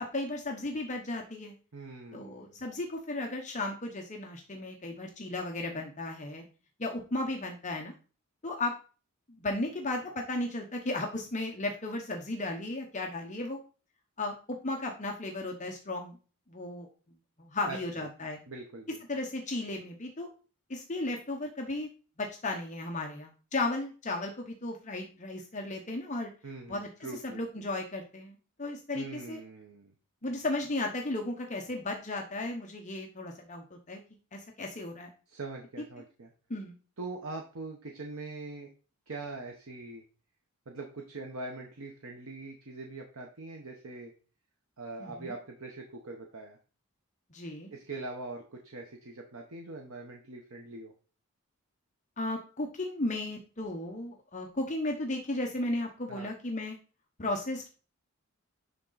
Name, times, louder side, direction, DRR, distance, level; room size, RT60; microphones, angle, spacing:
voice 1, 0.0-1.5 2.1-6.5 6.8-7.9 8.4-8.7 9.3-13.6 14.2-16.2 16.5-16.9 17.4-18.4 19.1-20.3 20.7-21.9 22.2-26.3 26.7-26.9 27.2-29.4 30.2-34.0 34.3-35.1 36.5-36.8 45.0-45.3 47.3-47.7 52.2-56.8 57.2-57.7, left 2 dB, 35° left, 2 dB, 0.9 m, -35 dB
voice 2, 1.7-2.6 17.7-18.1 18.5-19.0 26.4-27.4 28.9-29.9 35.3-36.3 37.0-38.7 39.1-40.0 40.7-44.1 44.8-46.6 47.7-50.9 56.1-56.3, right 3 dB, 70° right, 2 dB, 1.0 m, -42 dB
10.5 x 3.7 x 4.0 m, 0.37 s
head